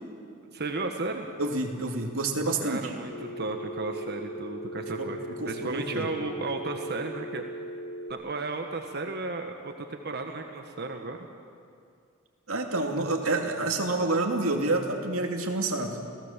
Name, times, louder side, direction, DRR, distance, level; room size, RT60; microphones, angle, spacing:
voice 1, 0.5-1.3 2.6-7.4 8.1-11.3, right 3 dB, 50° right, 4 dB, 1.3 m, -34 dB
voice 2, 1.4-2.9 5.0-5.1 5.4-6.1 12.5-16.0, right 2 dB, 80° right, 2 dB, 2.6 m, -28 dB
Telephone, 3.1-8.1, equal, 75° left, 1.3 m, -38 dB
29.0 x 17.0 x 7.4 m, 2.4 s
head